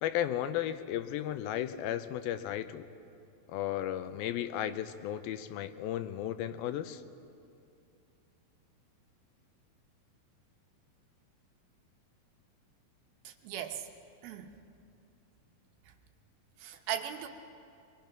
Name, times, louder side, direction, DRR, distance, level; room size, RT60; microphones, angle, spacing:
voice 1, 0.0-2.9 3.5-7.0, left 11 dB, 90° left, 11 dB, 2.6 m, -34 dB
voice 2, 13.2-13.9 14.2-14.5 16.6-17.3, right 10 dB, 90° right, 5 dB, 3.0 m, -38 dB
24.0 x 23.5 x 6.0 m, 2.6 s
omnidirectional pair, 4.2 m